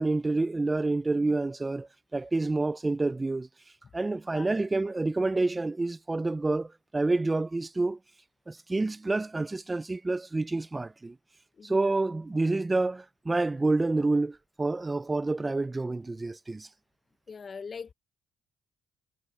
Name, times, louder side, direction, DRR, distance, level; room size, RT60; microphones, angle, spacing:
voice 1, 0.0-3.5 3.9-8.0 8.5-11.2 11.6-16.7, right 2 dB, 20° right, 0.5 m, -28 dB
voice 2, 11.6-11.9 17.3-17.9, left 5 dB, 40° left, 1.0 m, -41 dB
cardioid pair, 90°, 0 cm